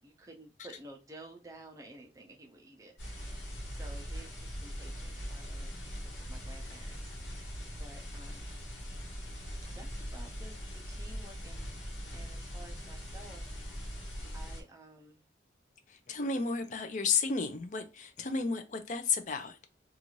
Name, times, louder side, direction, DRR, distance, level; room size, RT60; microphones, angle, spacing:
voice 1, 0.0-8.5 9.6-13.5 13.8-15.2, right 1 dB, 20° right, 0.6 m, -53 dB
sound 1, 3.0-14.6, equal, 75° left, 1.1 m, -41 dB
voice 2, 15.9-19.6, left 5 dB, 40° left, 0.4 m, -32 dB
2.6 x 2.4 x 3.0 m
head